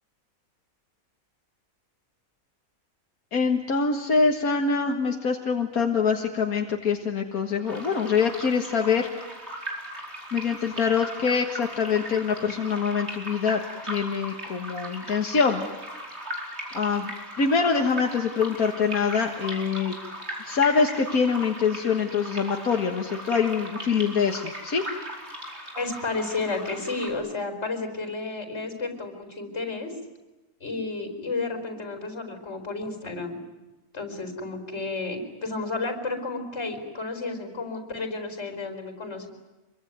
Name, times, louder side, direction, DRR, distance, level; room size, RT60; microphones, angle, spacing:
voice 1, 3.3-9.1 10.3-15.7 16.7-17.1 17.4-20.0 20.4-24.8, left 5 dB, 85° left, 3 dB, 2.0 m, -24 dB
sound 1, 7.6-27.1, right 1 dB, 50° right, 5.1 m, -38 dB
voice 2, 25.7-29.9 30.6-33.4 33.9-39.3, left 3 dB, 50° left, 6 dB, 5.0 m, -32 dB
26.0 x 23.5 x 9.4 m, 1.1 s
omnidirectional pair, 1.5 m